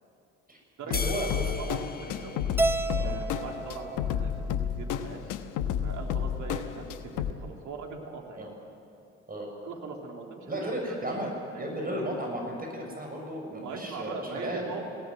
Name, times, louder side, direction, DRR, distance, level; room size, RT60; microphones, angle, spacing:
voice 1, 0.8-1.4 2.8-3.1 8.4-8.5 9.3-9.5 10.5-14.7, right 1 dB, 25° right, 1 dB, 6.6 m, -34 dB
sound 1, 0.9-7.3, left 8 dB, 65° left, 1.1 m, -31 dB
sound 2, 0.9-3.5, left 4 dB, 25° left, 1.2 m, -39 dB
voice 2, 1.6-2.4 3.0-5.4 5.8-8.5 9.6-11.2 13.6-14.8, right 4 dB, 60° right, 1 dB, 3.3 m, -40 dB
Keyboard (musical), 2.6-4.9, right 3 dB, 5° right, 0.8 m, -32 dB
21.5 x 17.0 x 9.4 m, 2.6 s
hypercardioid pair, 50°, 33 cm